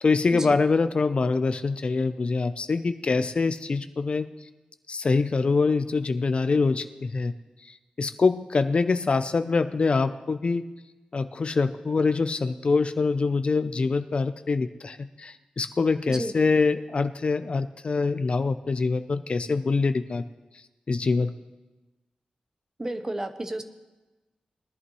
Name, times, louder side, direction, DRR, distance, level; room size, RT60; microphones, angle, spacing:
voice 1, 0.0-4.3 4.9-7.3 7.6-10.6 11.1-20.3 20.9-21.3, left 4 dB, 45° left, 10 dB, 0.5 m, -24 dB
voice 2, 22.8-23.6, right 1 dB, 20° right, 7 dB, 0.9 m, -32 dB
21.0 x 11.0 x 3.1 m, 1.1 s
wide cardioid pair, 115°, 3 cm